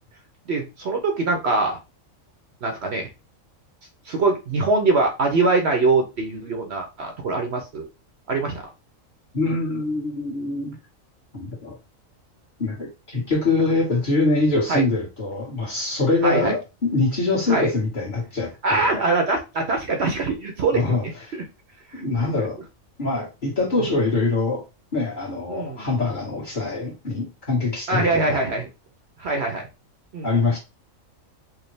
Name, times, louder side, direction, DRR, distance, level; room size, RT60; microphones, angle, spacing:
voice 1, 0.5-1.8 2.6-3.0 4.1-7.9 8.3-8.5 14.7-14.8 16.2-16.5 17.5-17.7 18.6-21.4 21.9-22.1 25.5-25.9 27.9-28.7 29.2-29.7 30.1-30.4, right 3 dB, 60° right, 0.9 m, -23 dB
voice 2, 9.3-10.7 11.3-11.8 12.6-18.9 20.7-21.0 22.0-22.6 23.0-24.6 24.9-28.4 30.2-30.6, left 3 dB, 40° left, 1.6 m, -24 dB
4.8 x 2.2 x 3.2 m
omnidirectional pair, 1.4 m